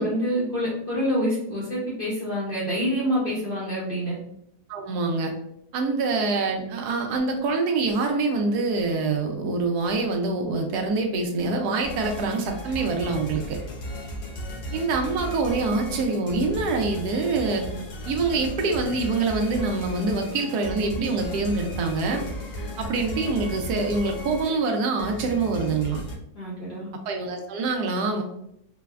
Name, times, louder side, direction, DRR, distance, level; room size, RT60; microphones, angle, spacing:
voice 1, 0.0-4.2 26.3-26.9, equal, 50° left, -7 dB, 0.6 m, -26 dB
voice 2, 4.7-5.3 5.7-13.6 14.7-17.7 18.1-22.2 22.8-26.0 27.0-28.2, right 3 dB, 75° right, 3 dB, 1.1 m, -25 dB
sound 1, 11.8-26.2, left 1 dB, 70° left, 1.2 m, -35 dB
3.9 x 2.1 x 2.3 m, 0.78 s
omnidirectional pair, 1.8 m